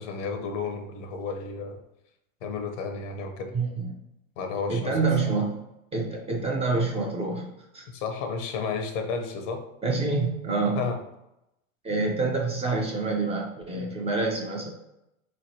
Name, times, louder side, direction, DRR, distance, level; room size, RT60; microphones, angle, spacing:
voice 1, 0.0-1.8 2.4-3.5 4.4-5.1 7.9-9.7 10.7-11.0, left 5 dB, 60° left, 5 dB, 0.8 m, -32 dB
voice 2, 3.5-3.9 4.7-5.6 5.9-7.9 9.8-10.8 11.8-14.7, right 3 dB, 15° right, -1 dB, 0.5 m, -27 dB
3.8 x 3.2 x 2.8 m, 0.87 s
hypercardioid pair, 100°, 41 cm